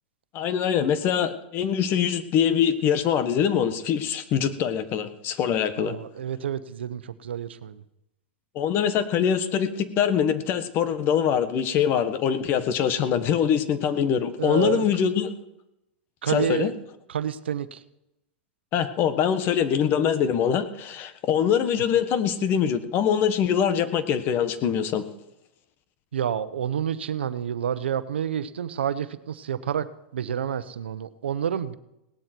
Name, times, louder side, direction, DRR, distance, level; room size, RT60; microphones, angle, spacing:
voice 1, 0.3-5.9 8.5-15.3 16.3-16.7 18.7-25.1, left 8 dB, 40° left, 12 dB, 1.3 m, -23 dB
voice 2, 5.8-7.8 14.4-14.9 16.2-16.7 17.1-17.8 26.1-29.9 30.1-31.7, right 9 dB, 90° right, 13 dB, 0.9 m, -29 dB
18.0 x 12.5 x 4.6 m, 0.86 s
hypercardioid pair, 125°, 6 cm